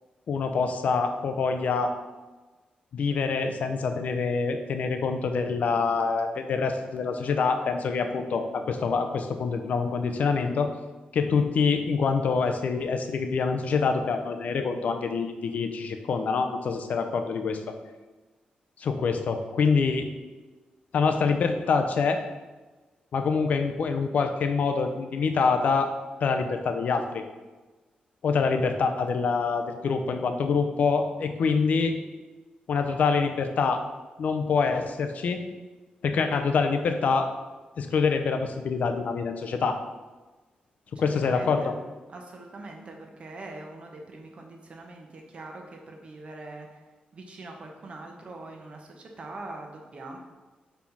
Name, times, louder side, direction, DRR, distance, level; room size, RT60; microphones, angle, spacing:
voice 1, 0.3-1.9 2.9-10.7 11.1-17.7 18.8-20.1 20.9-22.2 23.1-25.9 26.2-27.2 28.2-31.9 32.7-33.8 34.2-35.4 36.0-37.3 37.8-39.8 40.9-41.7, left 5 dB, 60° left, 6 dB, 0.5 m, -25 dB
voice 2, 41.2-41.7 42.1-46.8 47.1-50.2, right 2 dB, 40° right, 2 dB, 0.9 m, -43 dB
5.5 x 4.2 x 4.5 m, 1.2 s
wide cardioid pair, 165°, 3 cm